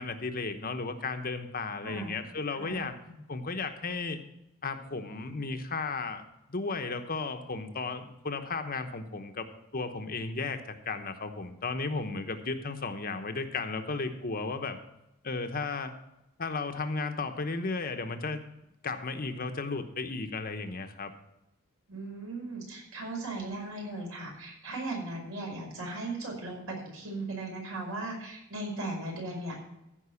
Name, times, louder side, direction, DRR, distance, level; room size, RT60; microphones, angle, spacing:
voice 1, 0.0-3.0 3.3-4.2 4.6-9.5 9.7-14.8 15.2-15.9 16.4-18.4 18.8-21.1, left 3 dB, 40° left, 7 dB, 1.0 m, -34 dB
voice 2, 2.6-3.2 21.9-29.5, right 2 dB, 65° right, -1 dB, 5.4 m, -37 dB
15.0 x 5.4 x 7.0 m, 0.86 s
head